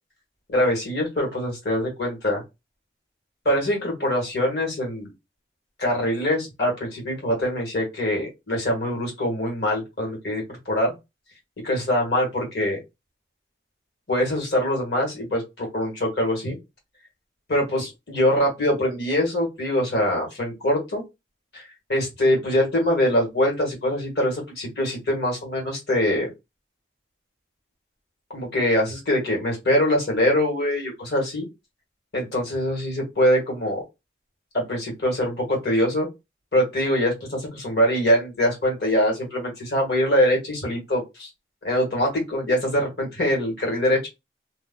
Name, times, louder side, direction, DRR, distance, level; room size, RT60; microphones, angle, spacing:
voice 1, 0.5-2.4 3.4-5.1 5.8-10.9 11.6-12.8 14.1-16.6 17.5-21.0 21.5-26.3 28.3-31.5 32.1-33.8 34.5-36.1 36.5-41.3 41.6-44.1, left 1 dB, 65° left, -1 dB, 1.5 m, -23 dB
2.6 x 2.2 x 3.6 m, 0.23 s
head